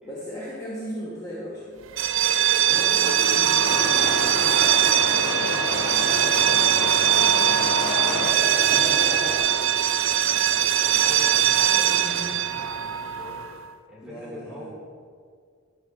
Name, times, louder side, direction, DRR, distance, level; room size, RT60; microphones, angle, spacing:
voice 1, 0.0-1.8 9.6-9.8 14.0-14.7, equal, 15° left, -7 dB, 1.3 m, -36 dB
sound 1, 1.9-13.6, right 11 dB, 65° right, 0.5 m, -21 dB
voice 2, 2.6-6.0 6.6-9.1 10.2-13.5 13.9-14.7, equal, 5° right, -6 dB, 2.5 m, -41 dB
Truck, 3.0-8.3, left 6 dB, 70° left, 0.4 m, -32 dB
sound 2, 3.5-9.4, left 1 dB, 40° left, 2.0 m, -32 dB
12.0 x 6.3 x 4.1 m, 2.1 s
head